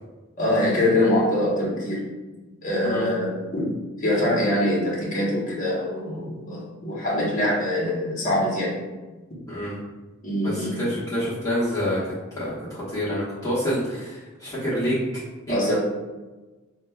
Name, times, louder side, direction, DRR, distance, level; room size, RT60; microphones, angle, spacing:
voice 1, 0.4-2.0 2.6-3.7 4.0-8.8 10.2-10.9 15.5-15.8, left 1 dB, 35° left, -5 dB, 1.0 m, -24 dB
voice 2, 10.4-15.6, equal, 15° left, -11 dB, 1.1 m, -27 dB
6.0 x 2.2 x 2.3 m, 1.2 s
head